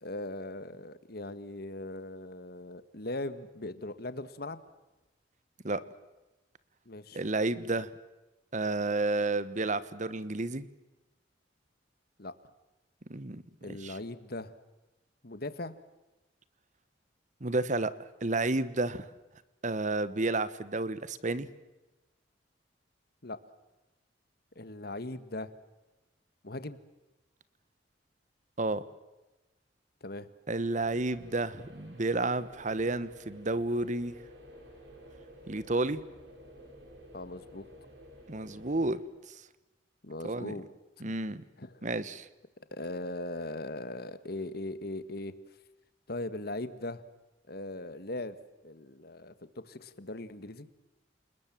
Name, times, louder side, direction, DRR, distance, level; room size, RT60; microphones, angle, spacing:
voice 1, 0.0-4.6 6.8-7.2 12.2-12.3 13.6-14.5 15.2-15.7 23.2-23.4 24.5-25.5 26.4-26.8 30.0-30.3 37.1-37.7 40.0-40.7 41.0-41.1 41.6-41.9 42.7-45.3 46.1-47.0 47.5-48.4 48.6-50.7, left 2 dB, 55° left, 13 dB, 1.7 m, -39 dB
voice 2, 7.1-7.9 8.5-10.7 13.1-13.4 13.7-14.0 17.4-17.9 18.2-19.1 19.6-21.5 28.6-28.8 30.5-34.1 35.5-36.0 38.3-39.0 40.2-40.5 41.0-41.4 41.8-42.3, right 2 dB, 40° right, 15 dB, 1.3 m, -31 dB
sound 1, 30.8-39.0, equal, 70° right, 6.8 m, -53 dB
28.5 x 20.5 x 7.5 m, 1.0 s
head